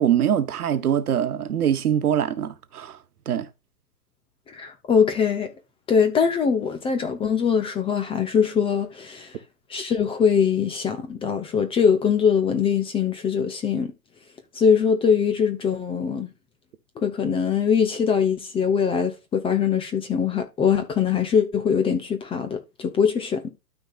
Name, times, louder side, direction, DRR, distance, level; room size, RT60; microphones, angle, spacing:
voice 1, 0.0-3.0 3.2-3.5, right 9 dB, 65° right, 1.4 m, -23 dB
voice 2, 4.5-5.5 5.9-9.3 9.7-13.9 14.5-16.3 17.0-23.5, left 7 dB, 10° left, 0.9 m, -22 dB
12.5 x 5.0 x 2.4 m
hypercardioid pair, 125°, 49 cm